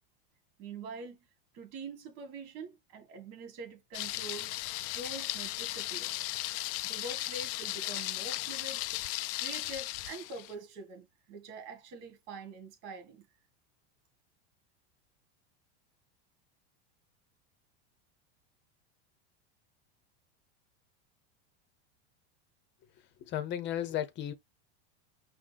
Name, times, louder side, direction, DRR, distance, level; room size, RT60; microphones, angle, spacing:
voice 1, 0.6-1.2 1.5-4.5 4.9-6.2 6.8-8.8 9.3-13.3, right 3 dB, 50° right, 2.1 m, -45 dB
Thunder, 3.9-10.5, left 18 dB, 55° left, 0.4 m, -36 dB
voice 2, 23.3-24.3, left 11 dB, 35° left, 0.9 m, -34 dB
5.6 x 2.3 x 3.5 m
supercardioid pair, 145°, 34 cm